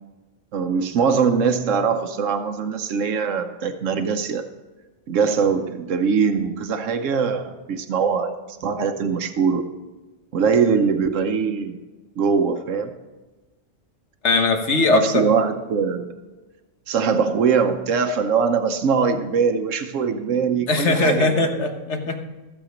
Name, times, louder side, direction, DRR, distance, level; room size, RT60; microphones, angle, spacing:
voice 1, 0.5-4.5 5.1-9.7 10.3-11.8 12.2-12.9 14.9-16.1 16.9-21.6, right 6 dB, 85° right, 7 dB, 1.2 m, -22 dB
voice 2, 14.2-15.2 20.7-22.2, left 3 dB, 65° left, 5 dB, 1.5 m, -20 dB
15.0 x 7.5 x 5.1 m, 1.2 s
omnidirectional pair, 1.3 m